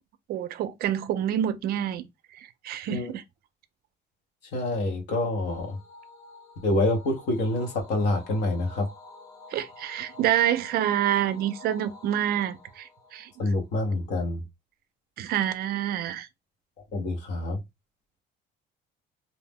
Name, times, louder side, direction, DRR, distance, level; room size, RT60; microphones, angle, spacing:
voice 1, 0.3-2.0 2.3-3.2 9.5-13.3 15.2-16.3, right 11 dB, 55° right, 0.4 m, -27 dB
voice 2, 4.5-5.8 6.6-8.9 13.4-14.4 16.9-17.6, left 2 dB, 65° left, 1.0 m, -27 dB
sound 1, 5.4-14.0, left 3 dB, 50° left, 1.4 m, -49 dB
2.7 x 2.0 x 3.4 m
cardioid pair, 140°, 19 cm